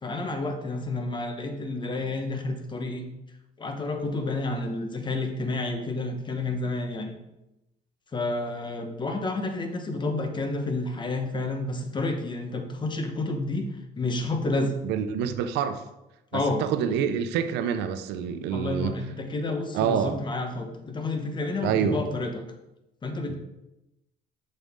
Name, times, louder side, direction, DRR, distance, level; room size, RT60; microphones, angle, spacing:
voice 1, 0.0-3.1 3.6-7.2 8.1-13.7 14.0-14.7 16.3-16.6 18.5-22.5 23.0-23.3, left 2 dB, 25° left, 5 dB, 1.1 m, -30 dB
voice 2, 14.8-15.8 16.3-18.9 19.7-20.2 21.6-22.0 23.3-23.4, right 8 dB, 90° right, 9 dB, 0.7 m, -27 dB
7.1 x 6.7 x 3.7 m, 0.91 s
cardioid pair, 110°, 17 cm